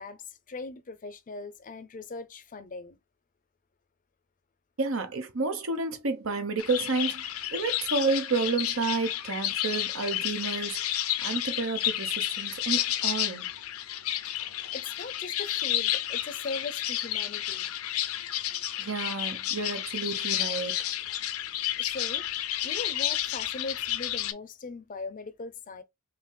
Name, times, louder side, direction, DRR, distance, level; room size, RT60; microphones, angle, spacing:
voice 1, 0.0-3.0 14.7-17.7 21.8-22.3 22.6-25.8, left 3 dB, 40° left, 0.5 m, -40 dB
voice 2, 4.8-10.8 11.2-13.5 18.8-20.8, right 3 dB, 70° right, 1.0 m, -30 dB
sound 1, 6.6-24.3, left 12 dB, 85° left, 0.5 m, -31 dB
5.1 x 2.9 x 2.2 m
head